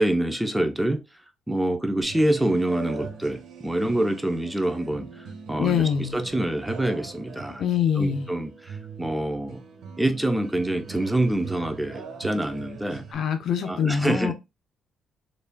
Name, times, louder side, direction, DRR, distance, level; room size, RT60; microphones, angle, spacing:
voice 1, 0.0-7.6 8.0-9.6 10.0-13.1 13.6-14.3, right 1 dB, 5° right, 0.6 m, -26 dB
sound 1, 2.0-13.1, right 5 dB, 80° right, 1.1 m, -41 dB
voice 2, 5.6-6.2 7.6-8.3 13.1-14.3, left 7 dB, 65° left, 0.7 m, -24 dB
4.1 x 3.3 x 2.2 m
cardioid pair, 90°, 0 cm